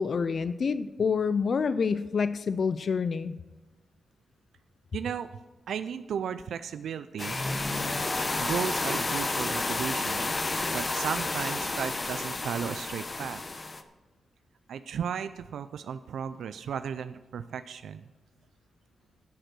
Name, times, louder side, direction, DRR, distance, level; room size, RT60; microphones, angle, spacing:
voice 1, 0.0-3.4, left 5 dB, 55° left, 14 dB, 0.3 m, -27 dB
voice 2, 4.9-5.3 5.7-7.4 8.4-10.3 10.7-13.4 14.7-18.0, right 7 dB, 85° right, 11 dB, 0.4 m, -35 dB
sound 1, 7.2-13.8, left 2 dB, 30° left, 0.8 m, -31 dB
10.5 x 8.0 x 6.1 m, 1.2 s
cardioid pair, 105°, 0 cm